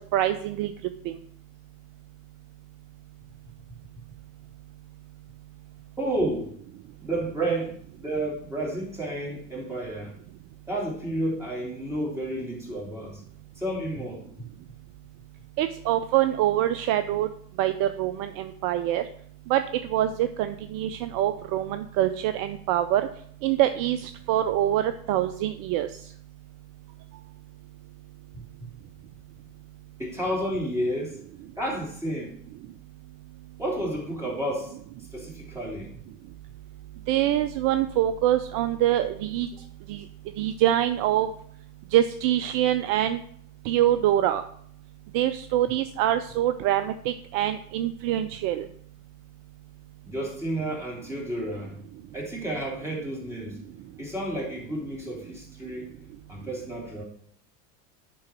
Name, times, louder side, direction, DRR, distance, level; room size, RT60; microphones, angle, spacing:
voice 1, 0.1-0.7 1.1-1.2 15.6-17.3 17.6-19.0 19.5-19.6 19.9-23.1 23.4-25.9 37.1-39.5 39.9-40.0 40.4-41.3 41.9-43.2 43.6-44.4 45.1-48.7, right 12 dB, 45° right, 10 dB, 0.5 m, -24 dB
voice 2, 6.0-6.5 7.0-10.1 10.7-13.2 13.6-14.5 28.3-28.7 30.0-31.2 31.6-32.4 33.6-34.8 35.1-36.0 50.0-51.8 52.1-53.6 54.0-55.9 56.3-57.0, right 1 dB, 5° right, -4 dB, 3.1 m, -31 dB
10.5 x 3.8 x 4.4 m, 0.63 s
hypercardioid pair, 85°, 47 cm